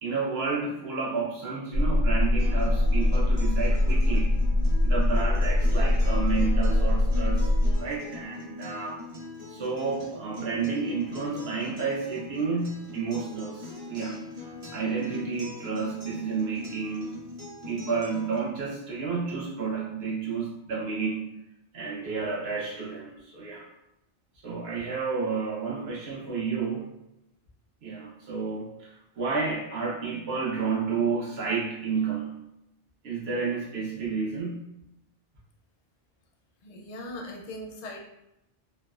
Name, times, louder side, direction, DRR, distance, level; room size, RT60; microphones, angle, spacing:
voice 1, 0.0-4.4 4.8-7.5 7.8-9.0 9.5-14.2 14.7-17.1 17.7-21.3 21.7-23.7 24.4-26.9 27.8-32.3 33.0-34.6, right 5 dB, 80° right, -4 dB, 1.0 m, -31 dB
sound 1, 1.7-7.8, left 1 dB, 85° left, 0.9 m, -23 dB
Acoustic guitar, 2.4-18.4, left 3 dB, 35° right, 0.8 m, -41 dB
voice 2, 36.6-38.0, left 1 dB, 55° left, 1 dB, 0.5 m, -39 dB
3.2 x 2.0 x 2.3 m, 0.86 s
omnidirectional pair, 1.0 m